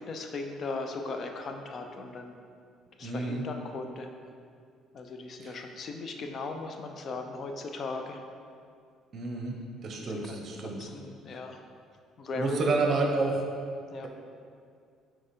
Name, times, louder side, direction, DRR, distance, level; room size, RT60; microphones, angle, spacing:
voice 1, 0.0-2.4 3.0-4.1 4.9-8.2 9.9-10.2 10.6-11.6 12.2-12.8 13.9-14.1, left 3 dB, 50° left, 4 dB, 0.6 m, -37 dB
voice 2, 3.0-3.4 5.4-5.6 9.1-9.6 9.8-10.9 11.3-11.4 12.3-13.4, right 3 dB, 45° right, 2 dB, 0.9 m, -30 dB
5.0 x 4.5 x 4.3 m, 2.3 s
cardioid pair, 100°, 0 cm